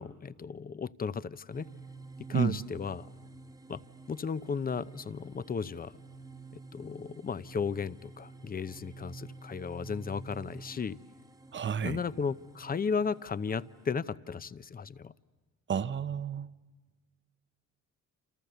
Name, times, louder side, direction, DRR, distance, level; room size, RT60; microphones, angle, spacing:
voice 1, 0.0-1.7 2.3-3.1 3.7-3.8 4.1-5.9 6.5-11.0 11.8-15.1, left 5 dB, 30° left, 0.7 m, -35 dB
sound 1, 1.5-13.9, right 3 dB, 10° right, 1.3 m, -50 dB
voice 2, 2.3-2.6 11.5-12.0 15.7-16.5, right 7 dB, 40° right, 0.8 m, -30 dB
28.5 x 28.0 x 6.9 m
cardioid pair, 90°, 30 cm